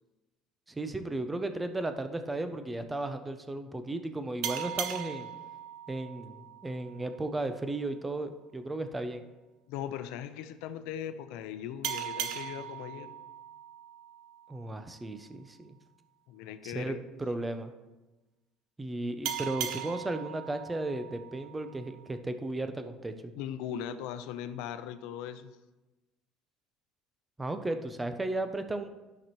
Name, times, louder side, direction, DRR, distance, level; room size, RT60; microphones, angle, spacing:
voice 1, 0.7-5.3 5.9-9.2 14.5-15.8 16.6-17.7 18.8-23.3 27.4-28.9, right 2 dB, 10° right, 8 dB, 0.5 m, -35 dB
sound 1, 4.4-7.7 11.8-15.1 19.2-22.2, right 10 dB, 75° right, 0.7 m, -39 dB
voice 2, 9.7-13.1 16.3-17.0 23.4-25.5, left 9 dB, 80° left, 11 dB, 0.6 m, -39 dB
13.0 x 5.9 x 3.0 m, 1.1 s
cardioid pair, 150°, 0 cm